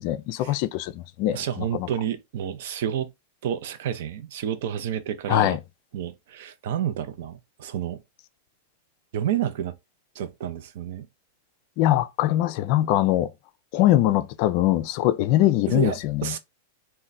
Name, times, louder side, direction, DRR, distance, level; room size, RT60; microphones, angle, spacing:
voice 1, 0.0-1.4 5.3-5.6 11.8-13.3 13.7-16.3, left 14 dB, 50° left, 0.3 m, -22 dB
voice 2, 1.3-3.1 3.4-5.6 5.9-8.0 9.1-9.8 10.1-11.1 15.7-16.4, right 10 dB, 60° right, 0.5 m, -30 dB
3.1 x 2.2 x 3.9 m
hypercardioid pair, 95°, 0 cm